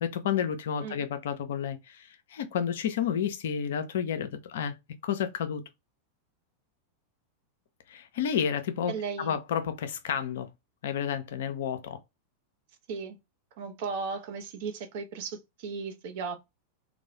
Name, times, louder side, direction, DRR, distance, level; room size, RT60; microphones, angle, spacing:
voice 1, 0.0-4.8 5.0-5.6 7.9-10.5 10.8-12.0, left 8 dB, 60° left, 0.4 m, -31 dB
voice 2, 8.9-9.4 12.9-13.2 13.6-16.4, right 5 dB, 50° right, 0.5 m, -36 dB
2.2 x 2.0 x 2.8 m
figure-of-eight pair, 90°, 0 cm